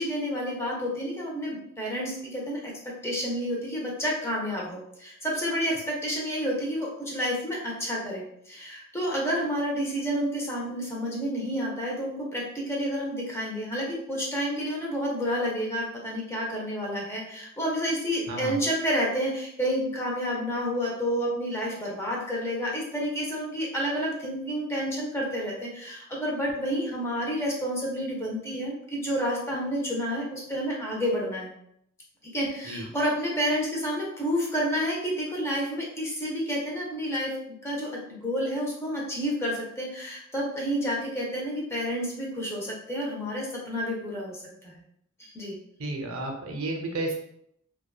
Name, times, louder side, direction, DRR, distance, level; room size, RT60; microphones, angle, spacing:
voice 1, 0.0-2.7 3.0-31.5 32.3-37.3 37.6-44.4 44.6-44.7 45.2-45.6, equal, 15° left, -3 dB, 0.6 m, -30 dB
voice 2, 18.3-18.6 32.7-32.9 45.8-47.1, right 2 dB, 80° right, 1 dB, 0.6 m, -32 dB
2.7 x 2.2 x 2.3 m, 0.72 s
head